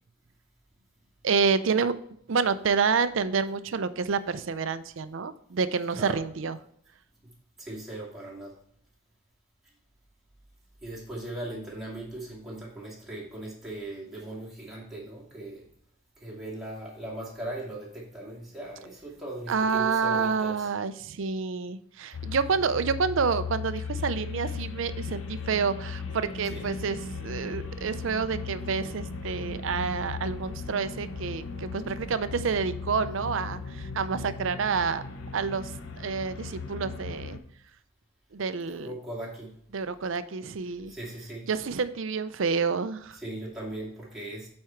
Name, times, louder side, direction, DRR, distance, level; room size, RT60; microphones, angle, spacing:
voice 1, 1.2-1.9 2.3-6.6 19.5-35.0 35.3-35.7 36.0-37.4 38.3-38.9 39.7-40.9 41.5-43.2, right 5 dB, 65° right, 13 dB, 0.5 m, -28 dB
voice 2, 7.6-8.5 10.8-15.6 16.2-20.7 38.7-39.5 40.9-41.4 43.2-44.5, right 1 dB, ahead, -6 dB, 2.3 m, -38 dB
sound 1, 22.1-37.4, left 4 dB, 70° left, 0.8 m, -37 dB
8.5 x 4.4 x 4.5 m, 0.67 s
head